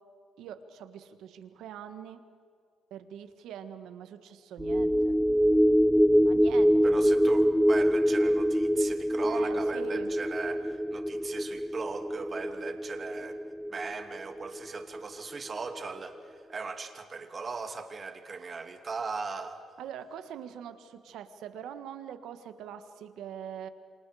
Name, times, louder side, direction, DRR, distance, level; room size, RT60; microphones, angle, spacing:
voice 1, 0.4-2.2 2.9-5.2 6.2-7.1 9.2-10.1 19.8-23.7, right 9 dB, 85° right, 9 dB, 1.6 m, -43 dB
sound 1, 4.6-15.2 15.5-15.7, equal, ahead, 0.6 m, -25 dB
voice 2, 6.8-13.4 13.7-19.6, right 4 dB, 40° right, 6 dB, 2.6 m, -38 dB
29.5 x 26.5 x 5.0 m, 2.1 s
cardioid pair, 90°, 0 cm